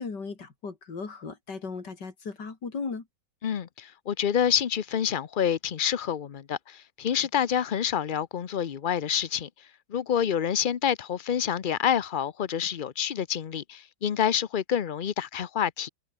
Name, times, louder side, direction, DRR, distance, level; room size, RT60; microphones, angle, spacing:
voice 1, 0.0-3.1, left 4 dB, 70° left, 3.7 m, -36 dB
voice 2, 3.4-9.5 9.9-15.9, left 8 dB, 85° left, 0.4 m, -27 dB
omnidirectional pair, 1.9 m